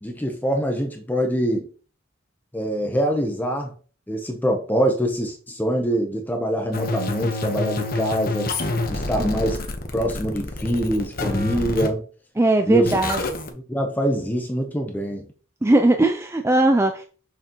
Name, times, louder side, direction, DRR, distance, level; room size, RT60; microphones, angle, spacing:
voice 1, 0.0-1.7 2.5-3.7 4.1-8.5 8.9-9.6 9.9-12.0 12.7-13.0 13.7-15.3, equal, 10° left, 3 dB, 0.8 m, -24 dB
sound 1, 6.7-11.9 12.8-13.5, left 2 dB, 45° left, 1.1 m, -27 dB
voice 2, 12.4-13.2 15.6-17.0, right 2 dB, 10° right, 5 dB, 0.4 m, -19 dB
6.7 x 6.4 x 3.0 m, 0.39 s
head